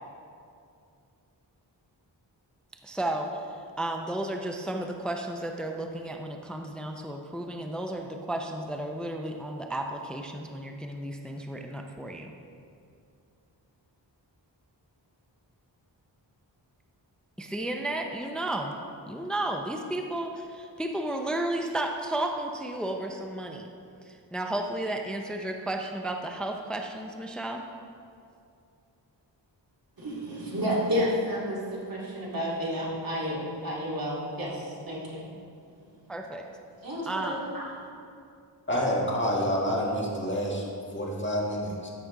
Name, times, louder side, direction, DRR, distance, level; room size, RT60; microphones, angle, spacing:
voice 1, 2.8-3.4 3.8-12.3 17.4-18.8 19.1-23.7 24.0-27.6 36.1-36.5 37.1-37.4, right 1 dB, ahead, 3 dB, 0.5 m, -33 dB
voice 2, 30.0-35.2 36.8-37.6, equal, 50° right, -6 dB, 2.4 m, -31 dB
voice 3, 38.7-41.9, equal, 25° left, -3 dB, 1.7 m, -28 dB
13.0 x 6.0 x 3.8 m, 2.5 s
wide cardioid pair, 100°, 44 cm